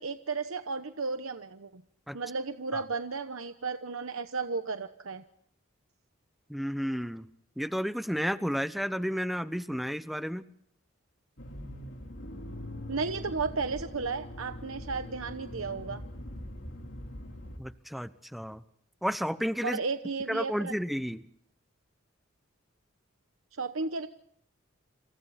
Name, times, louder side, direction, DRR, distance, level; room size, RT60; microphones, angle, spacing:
voice 1, 0.0-1.8 2.1-5.2 12.9-16.0 19.6-20.7 23.6-24.1, right 4 dB, 85° right, 8 dB, 1.0 m, -34 dB
voice 2, 6.5-7.2 7.6-10.4 17.6-18.6 19.0-19.8 20.3-21.2, equal, ahead, 12 dB, 0.9 m, -32 dB
Accelerating revving vroom, 11.4-17.6, left 1 dB, 60° left, 3.6 m, -42 dB
28.0 x 27.5 x 4.2 m, 0.68 s
head